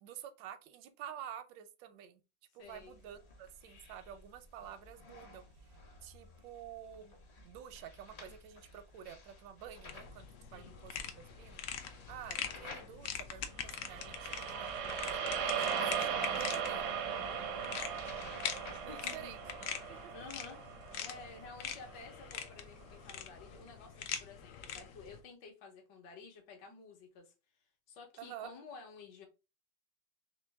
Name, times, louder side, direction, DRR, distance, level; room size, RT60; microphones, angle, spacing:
voice 1, 0.0-2.2 2.5-7.1 7.4-11.6 12.1-17.0 18.8-20.1 28.2-28.5, right 10 dB, 85° right, 1.3 m, -50 dB
voice 2, 2.6-3.0 10.5-10.8 17.6-17.9 18.8-19.4 19.8-20.6 21.0-27.3 27.9-29.3, left 4 dB, 70° left, 1.6 m, -52 dB
sound 1, 2.6-19.6, left 3 dB, 45° left, 1.0 m, -54 dB
sound 2, 9.9-25.2, left 8 dB, 90° left, 0.7 m, -44 dB
sound 3, 13.7-22.0, right 7 dB, 65° right, 0.7 m, -38 dB
3.8 x 3.1 x 3.3 m
omnidirectional pair, 2.0 m